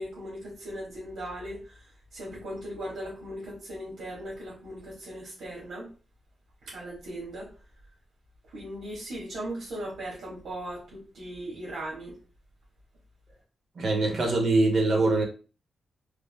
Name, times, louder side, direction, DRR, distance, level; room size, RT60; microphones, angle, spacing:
voice 1, 0.0-1.8 2.1-5.9 6.6-7.5 8.5-12.1, right 1 dB, 80° right, 1.3 m, -38 dB
voice 2, 13.8-15.2, right 2 dB, 50° right, 0.8 m, -23 dB
3.3 x 2.3 x 2.2 m
wide cardioid pair, 170°, 0 cm